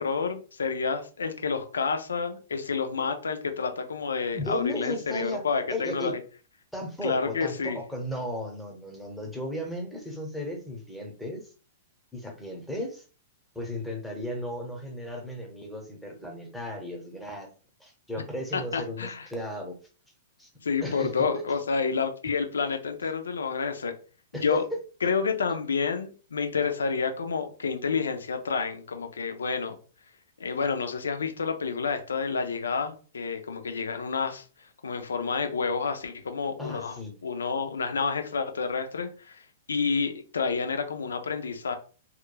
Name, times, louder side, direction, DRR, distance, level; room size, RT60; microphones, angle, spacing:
voice 1, 0.0-6.2 7.0-7.8 18.5-19.3 20.6-23.9 24.3-24.6 25.0-29.8 30.4-34.5 34.8-39.4 39.7-41.7, left 5 dB, 85° left, 6 dB, 0.4 m, -29 dB
voice 2, 4.3-5.4 5.7-6.2 6.7-11.5 12.1-13.0 13.5-17.5 17.8-19.8 20.4-20.5 20.8-21.4 24.3-24.6 36.6-37.1, left 1 dB, ahead, 0 dB, 0.8 m, -35 dB
2.9 x 2.3 x 2.2 m, 0.37 s
hypercardioid pair, 120°, 0 cm